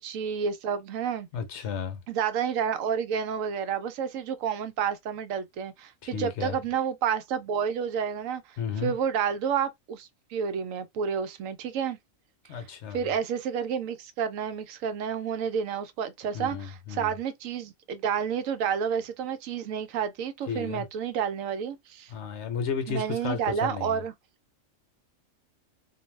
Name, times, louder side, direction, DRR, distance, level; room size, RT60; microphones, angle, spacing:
voice 1, 0.0-1.3 2.1-12.0 12.5-12.6 12.9-22.1 22.9-24.1, right 7 dB, 90° right, 1.0 m, -30 dB
voice 2, 1.3-2.0 6.0-6.6 8.6-8.9 12.5-13.0 16.3-17.2 20.5-20.9 22.1-24.0, left 6 dB, 65° left, 0.9 m, -33 dB
2.6 x 2.1 x 3.1 m
omnidirectional pair, 1.3 m